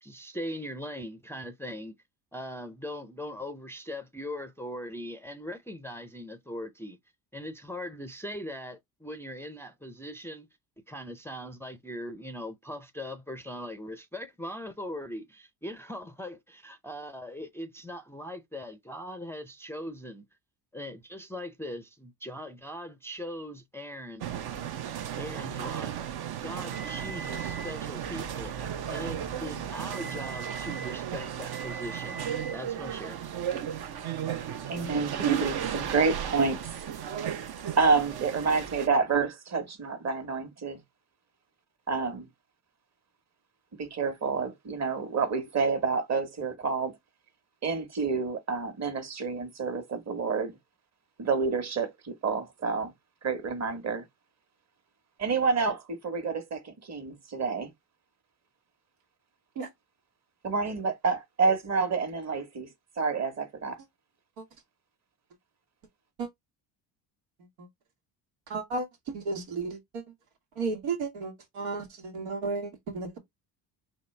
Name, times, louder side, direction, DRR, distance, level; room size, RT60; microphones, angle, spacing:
voice 1, 0.0-1.9 2.3-7.0 7.3-10.5 10.9-20.2 20.7-24.4 25.2-26.0 26.4-28.5 28.9-32.2 32.5-33.2, equal, 5° left, 0.5 m, -40 dB
sound 1, 24.2-38.9, right 9 dB, 55° right, 0.9 m, -34 dB
voice 2, 34.7-36.6 37.8-40.8 41.9-42.3 43.8-47.0 47.6-50.5 51.2-52.9 53.2-54.0 55.2-57.7 60.4-62.7 63.0-63.7, right 4 dB, 35° right, 1.4 m, -28 dB
voice 3, 68.5-70.0 70.6-73.2, right 4 dB, 90° right, 1.7 m, -33 dB
4.3 x 3.1 x 3.2 m
cardioid pair, 105°, 46 cm